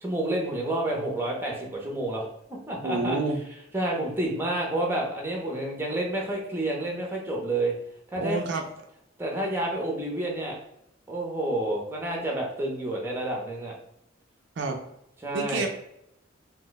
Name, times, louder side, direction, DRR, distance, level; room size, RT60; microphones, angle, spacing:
voice 1, 0.0-2.2 2.7-3.2 3.7-7.7 8.1-8.4 9.2-10.6 11.1-13.7 15.2-15.7, right 1 dB, 10° right, -1 dB, 0.6 m, -29 dB
voice 2, 2.8-3.4 8.2-8.6 14.6-14.8 15.3-15.7, right 3 dB, 60° right, 3 dB, 0.4 m, -28 dB
2.8 x 2.1 x 3.8 m, 0.79 s
head